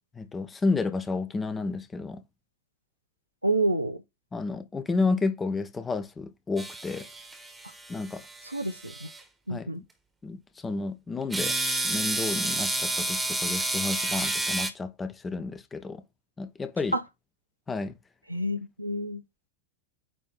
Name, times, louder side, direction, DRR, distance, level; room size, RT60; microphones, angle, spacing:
voice 1, 0.2-2.2 4.3-7.1 7.9-8.2 9.5-9.8 10.2-11.5 11.8-16.0 16.4-17.0 17.7-17.9, left 3 dB, 15° left, 1.0 m, -31 dB
voice 2, 3.4-4.0 8.4-9.1 9.5-9.8 16.9-17.0 18.3-19.2, right 1 dB, 85° right, 1.0 m, -28 dB
sound 1, 6.6-9.2 11.3-14.7, right 2 dB, 10° right, 1.4 m, -30 dB
9.2 x 3.2 x 4.0 m
figure-of-eight pair, 90°, 0 cm